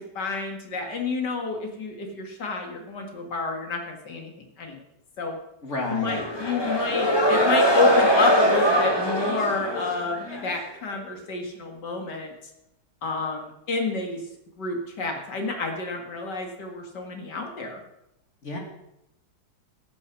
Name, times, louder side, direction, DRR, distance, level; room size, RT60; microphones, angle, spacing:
voice 1, 0.1-4.8 5.2-5.4 5.9-12.3 13.0-14.2 14.6-17.8, left 3 dB, 75° left, 3 dB, 2.6 m, -29 dB
voice 2, 5.6-6.2 18.4-18.6, left 2 dB, 40° left, 1 dB, 2.7 m, -30 dB
sound 1, 6.0-10.5, equal, 15° left, 1.6 m, -22 dB
14.5 x 8.6 x 6.1 m, 0.85 s
omnidirectional pair, 1.9 m